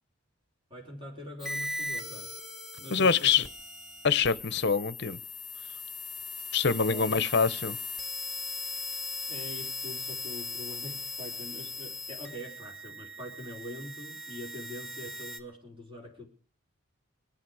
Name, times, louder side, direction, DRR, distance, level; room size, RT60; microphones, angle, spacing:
voice 1, 0.7-2.3 2.8-3.3 6.9-7.1 9.3-16.3, left 1 dB, 25° right, 3.6 m, -43 dB
sound 1, 1.4-15.4, left 3 dB, ahead, 1.2 m, -39 dB
voice 2, 2.9-3.5 4.0-5.2 6.5-7.8, left 5 dB, 55° left, 0.7 m, -25 dB
25.0 x 8.9 x 4.8 m
head